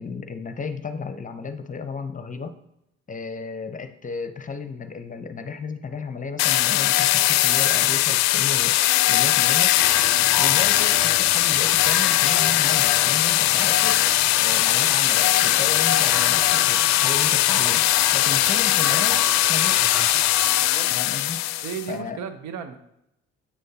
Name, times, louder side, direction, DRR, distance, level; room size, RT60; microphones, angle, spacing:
voice 1, 0.0-2.6 3.1-8.8 9.1-9.7 10.4-14.1 14.4-17.8 18.1-19.9 20.9-21.4 21.9-22.2, left 5 dB, 25° left, 9 dB, 0.7 m, -33 dB
sound 1, 6.4-21.9, left 15 dB, 65° left, 0.4 m, -20 dB
sound 2, 9.8-20.7, equal, ahead, 0.4 m, -34 dB
voice 2, 20.6-20.9 21.6-22.8, right 7 dB, 70° right, 8 dB, 0.8 m, -35 dB
7.7 x 6.4 x 2.8 m, 0.81 s
hypercardioid pair, 55°, 29 cm